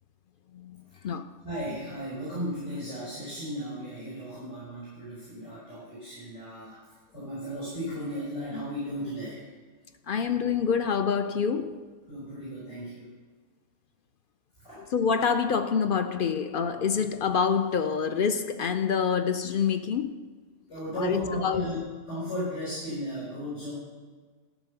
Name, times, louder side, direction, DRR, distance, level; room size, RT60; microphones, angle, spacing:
voice 1, 0.5-1.3 10.1-11.9 14.9-20.2 21.0-21.7, left 6 dB, 55° left, 0.6 m, -27 dB
voice 2, 1.4-6.8 7.1-9.4 12.1-13.1 14.6-14.9 16.9-17.0 20.7-23.7, equal, 75° left, 4.8 m, -35 dB
13.5 x 5.9 x 6.8 m
omnidirectional pair, 1.3 m